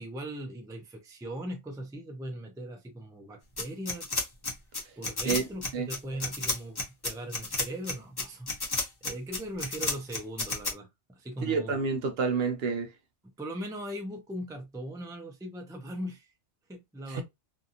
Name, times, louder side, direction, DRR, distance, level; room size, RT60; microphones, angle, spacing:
voice 1, 0.0-4.2 5.0-11.8 13.4-16.3 16.7-17.2, right 1 dB, 5° right, 0.4 m, -39 dB
sound 1, 3.6-10.7, left 3 dB, 25° left, 0.7 m, -31 dB
voice 2, 11.4-12.9 17.1-17.2, right 5 dB, 65° right, 0.8 m, -28 dB
2.6 x 2.4 x 2.7 m
omnidirectional pair, 1.2 m